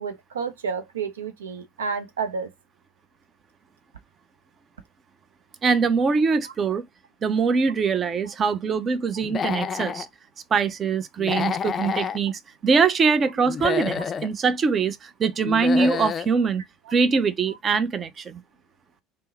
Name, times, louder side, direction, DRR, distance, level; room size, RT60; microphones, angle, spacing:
voice 1, 0.0-2.5, right 5 dB, 85° right, 0.4 m, -30 dB
voice 2, 5.6-6.9 7.2-10.1 10.5-16.6 16.9-18.4, right 5 dB, 35° right, 0.5 m, -23 dB
Human voice / Animal, 9.2-10.1 11.2-12.2 13.4-14.3 15.4-16.3, left 7 dB, 35° left, 0.4 m, -28 dB
3.5 x 2.0 x 4.0 m
hypercardioid pair, 70°, 0 cm